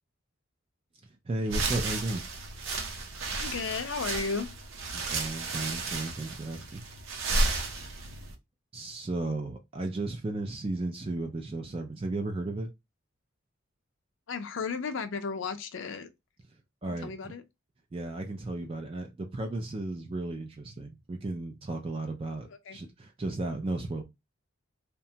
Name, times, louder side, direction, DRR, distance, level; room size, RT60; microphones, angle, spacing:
voice 1, 1.3-2.2 4.9-6.8 8.7-12.7 16.8-17.1 17.9-24.0, right 2 dB, 25° right, 0.3 m, -34 dB
sound 1, 1.5-8.3, right 2 dB, 65° right, 0.6 m, -33 dB
voice 2, 3.4-4.5 14.3-16.1 16.9-17.4 22.4-22.8, left 5 dB, 65° left, 0.4 m, -34 dB
2.8 x 2.2 x 2.6 m
head